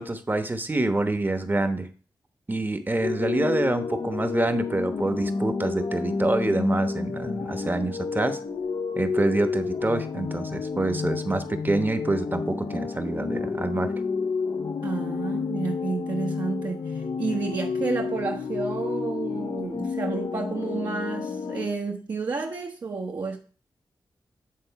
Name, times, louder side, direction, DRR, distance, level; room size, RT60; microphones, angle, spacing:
voice 1, 0.0-1.9 2.5-8.4 9.0-13.9, right 2 dB, 25° right, 1.1 m, -26 dB
sound 1, 3.0-21.7, left 4 dB, 75° left, 0.8 m, -30 dB
voice 2, 14.8-23.4, right 4 dB, 55° right, 1.1 m, -31 dB
9.6 x 3.8 x 5.8 m
wide cardioid pair, 85°, 8 cm